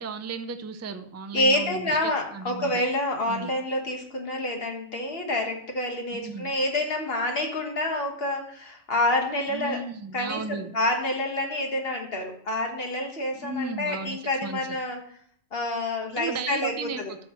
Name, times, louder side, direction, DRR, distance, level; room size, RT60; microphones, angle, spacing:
voice 1, 0.0-2.7 3.3-3.5 6.1-6.5 9.5-10.7 13.3-14.6 16.2-17.2, right 4 dB, 25° right, 8 dB, 0.4 m, -35 dB
voice 2, 1.3-9.8 10.1-15.0 15.5-17.1, left 1 dB, 60° left, 2 dB, 1.7 m, -28 dB
12.5 x 6.0 x 3.1 m, 0.62 s
omnidirectional pair, 1.1 m